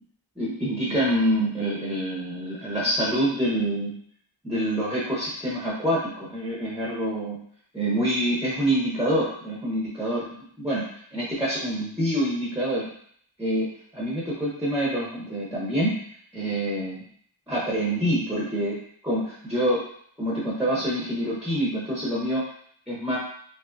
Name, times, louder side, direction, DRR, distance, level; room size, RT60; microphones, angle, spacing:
voice 1, 0.4-3.9 4.4-7.4 7.7-10.9 11.1-12.9 13.4-13.7 13.9-15.9 16.3-17.0 17.5-18.8 19.0-19.8 20.2-22.4 22.9-23.2, right 1 dB, ahead, -6 dB, 1.1 m, -26 dB
5.4 x 2.1 x 2.6 m, 0.63 s
wide cardioid pair, 60°, 47 cm